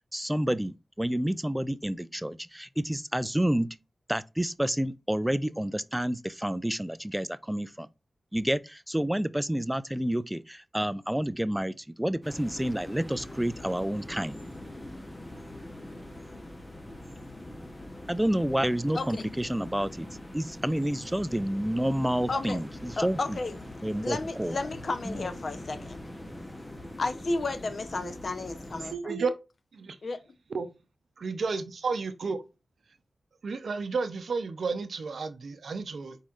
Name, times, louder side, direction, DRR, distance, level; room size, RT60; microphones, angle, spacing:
voice 1, 0.1-3.7 4.1-7.9 8.3-14.4 18.1-20.1 20.3-23.4 23.8-24.6 25.0-25.3, right 1 dB, 10° right, 0.3 m, -29 dB
sound 1, 12.2-29.0, left 1 dB, 20° left, 0.9 m, -43 dB
voice 2, 18.9-19.3 22.3-22.6 23.0-23.6 24.0-26.0 27.0-29.1 30.0-30.2, left 3 dB, 60° left, 0.7 m, -32 dB
voice 3, 28.9-29.3 29.7-30.0 30.5-30.7 31.2-32.4 33.4-36.2, right 4 dB, 75° right, 0.6 m, -32 dB
4.6 x 4.1 x 2.4 m
cardioid pair, 55°, 0 cm